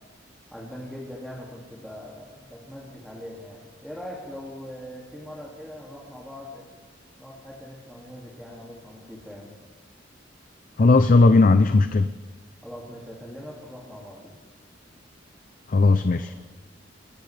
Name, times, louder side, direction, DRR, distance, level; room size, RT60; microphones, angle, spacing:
voice 1, 0.5-6.6 7.2-9.5 12.6-14.4 15.8-16.3, equal, ahead, -5 dB, 2.3 m, -41 dB
voice 2, 10.8-12.1 15.7-16.3, left 3 dB, 45° left, 10 dB, 0.5 m, -17 dB
27.0 x 13.5 x 3.3 m, 1.3 s
head